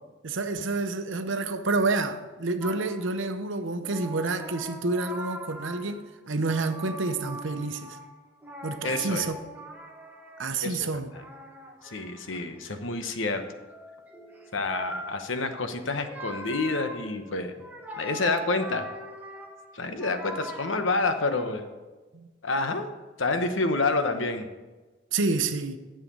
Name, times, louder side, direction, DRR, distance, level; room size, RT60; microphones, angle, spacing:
voice 1, 0.2-8.0 8.6-9.4 10.4-11.1 22.1-22.3 25.1-25.8, right 3 dB, 80° right, 0.8 m, -29 dB
sound 1, 2.6-3.5 3.8-6.1 6.4-10.6 11.0-21.7, right 1 dB, 10° right, 1.1 m, -42 dB
voice 2, 8.8-9.3 10.6-11.0 11.8-13.4 14.5-17.5 18.0-18.9 19.7-21.7 22.4-22.9 23.2-24.5, left 3 dB, 85° left, 1.0 m, -28 dB
10.0 x 7.5 x 5.4 m
head